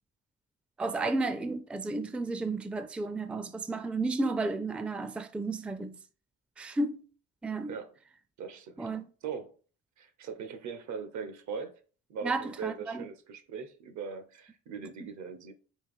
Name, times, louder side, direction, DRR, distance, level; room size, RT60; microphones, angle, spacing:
voice 1, 0.8-6.0 6.6-7.0 7.4-7.7 8.8-9.1 12.2-13.1, right 3 dB, 5° right, 0.3 m, -32 dB
voice 2, 8.4-8.9 9.2-9.6 10.0-11.8 12.1-15.5, right 6 dB, 70° right, 0.9 m, -40 dB
4.4 x 3.0 x 3.6 m
cardioid pair, 90°, 30 cm